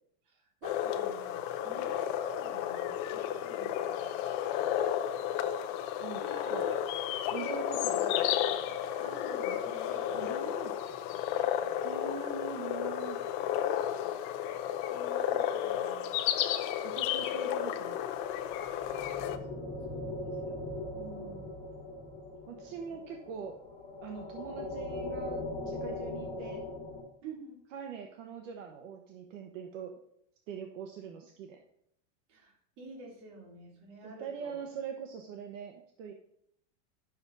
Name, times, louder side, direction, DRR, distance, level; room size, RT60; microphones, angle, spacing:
voice 1, 0.2-4.8 6.2-6.8 7.4-11.8 14.8-16.1 17.3-17.4 19.2-21.0 22.5-22.9 27.2-27.6 32.3-34.6, right 3 dB, 45° right, -1 dB, 3.2 m, -51 dB
sound 1, 0.6-19.4, left 11 dB, 40° left, 0.6 m, -32 dB
voice 2, 6.0-6.7 7.3-8.3 10.1-10.7 11.8-13.2 16.8-18.0 21.0-21.5 22.5-23.6 24.0-26.6 27.7-29.9 30.5-31.6 34.0-36.1, right 7 dB, 70° right, 4 dB, 1.2 m, -42 dB
sound 2, 18.2-27.0, left 2 dB, 20° left, 2.2 m, -40 dB
11.0 x 7.1 x 4.0 m, 0.71 s
supercardioid pair, 165°, 39 cm